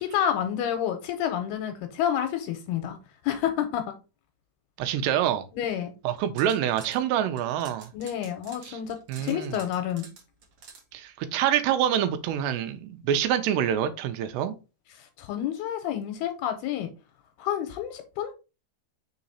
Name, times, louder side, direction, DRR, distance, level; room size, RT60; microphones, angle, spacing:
voice 1, 0.0-3.0 3.2-3.8 5.5-5.9 7.9-10.1 15.0-16.9 17.4-18.3, left 10 dB, 80° left, 2.5 m, -29 dB
voice 2, 4.8-5.5 6.0-7.9 8.6-8.8 9.1-9.6 10.9-14.5, right 10 dB, 85° right, 2.8 m, -26 dB
sound 1, 6.1-7.0 7.4-10.8, right 5 dB, 60° right, 1.5 m, -49 dB
6.1 x 3.9 x 4.1 m
omnidirectional pair, 5.0 m